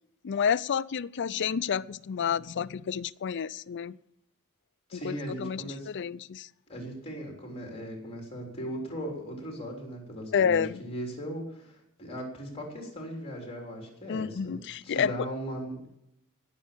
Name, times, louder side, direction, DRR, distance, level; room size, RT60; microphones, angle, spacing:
voice 1, 0.2-3.9 4.9-6.5 10.3-10.8 14.1-15.1, left 7 dB, 55° left, 16 dB, 0.4 m, -29 dB
voice 2, 4.9-5.9 6.7-15.8, equal, 30° left, 0 dB, 3.3 m, -38 dB
18.0 x 7.2 x 7.3 m, 0.80 s
head